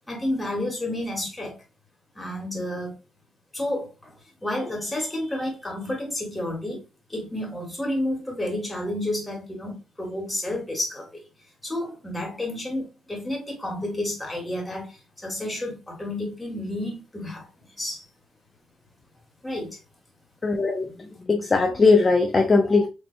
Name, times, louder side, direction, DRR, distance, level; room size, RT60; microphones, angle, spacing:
voice 1, 0.1-1.6 2.2-3.0 3.5-4.1 4.4-6.8 7.1-11.1 11.6-17.5 17.8-18.1 19.4-19.8, left 1 dB, 10° left, 1.6 m, -30 dB
voice 2, 20.4-20.9 21.3-22.9, left 3 dB, 30° left, 0.5 m, -19 dB
4.1 x 2.9 x 2.2 m
cardioid pair, 90°, 0 cm